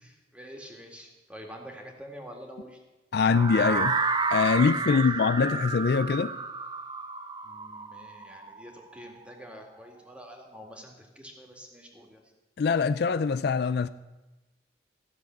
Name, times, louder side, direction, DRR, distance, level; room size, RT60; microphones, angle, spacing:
voice 1, 0.0-2.8 4.9-5.1 7.4-12.3, equal, 5° right, 2.1 m, -46 dB
voice 2, 3.1-4.0 4.3-6.3 12.6-13.9, left 5 dB, 60° left, 0.4 m, -23 dB
sound 1, 3.3-9.2, right 4 dB, 25° right, 0.7 m, -31 dB
15.0 x 7.3 x 9.1 m
head